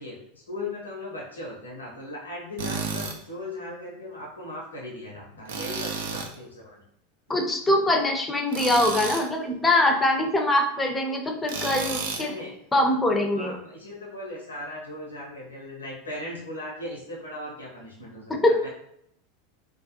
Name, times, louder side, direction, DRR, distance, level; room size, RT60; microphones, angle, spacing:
voice 1, 0.0-6.8 7.3-7.4 12.1-12.6 13.3-18.7, left 1 dB, 85° left, -3 dB, 0.7 m, -38 dB
Tools, 2.6-3.2 5.5-6.3 8.5-9.3 11.5-12.3, right 5 dB, 70° right, 0.4 m, -31 dB
voice 2, 7.3-12.3 12.7-13.5 18.3-18.5, left 1 dB, 15° left, 3 dB, 0.5 m, -23 dB
2.3 x 2.2 x 2.7 m, 0.72 s
hypercardioid pair, 85°, 0 cm